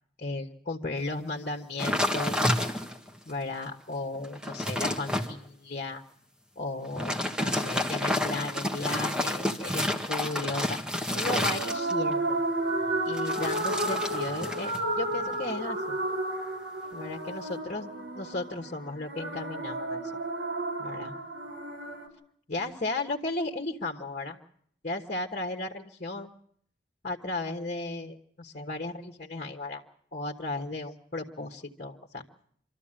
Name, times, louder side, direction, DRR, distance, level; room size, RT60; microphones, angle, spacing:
voice 1, 0.2-2.5 3.2-6.0 6.5-12.4 13.1-16.0 16.9-20.0 20.8-21.2 22.5-24.4 24.8-26.3 27.0-29.8 30.1-32.2, left 2 dB, 45° left, 3 dB, 1.4 m, -35 dB
sound 1, 1.8-3.1 3.6-3.7 4.2-5.3 6.8-12.1 13.1-14.8 15.1-15.5, left 1 dB, 5° right, 1.6 m, -30 dB
sound 2, 11.1-22.1, right 2 dB, 70° right, 5.6 m, -32 dB
25.5 x 13.5 x 8.8 m, 0.65 s
head